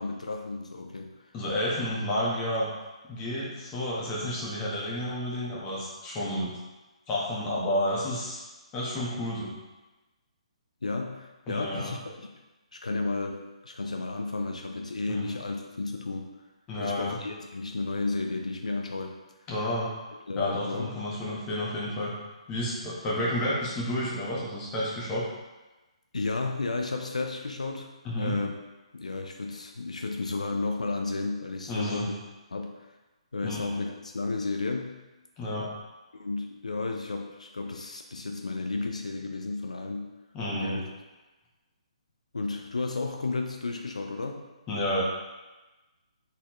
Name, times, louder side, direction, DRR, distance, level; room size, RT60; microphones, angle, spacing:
voice 1, 0.0-1.3 10.8-12.2 12.7-16.3 16.8-19.2 20.3-21.0 26.1-27.9 28.2-28.6 28.9-32.1 32.5-32.9 33.3-35.0 36.1-40.1 40.5-40.8 42.3-44.4, left 3 dB, 85° left, 3 dB, 0.5 m, -32 dB
voice 2, 1.3-2.7 3.1-6.5 7.1-8.4 8.7-9.5 11.5-11.9 15.1-15.2 16.7-17.1 19.5-19.9 20.3-22.1 22.5-25.3 28.0-28.3 31.7-32.0 33.4-33.6 35.4-35.7 40.3-40.8 44.7-45.0, left 1 dB, 20° left, -6 dB, 1.3 m, -30 dB
4.1 x 4.1 x 3.1 m, 1.1 s
figure-of-eight pair, 140°, 4 cm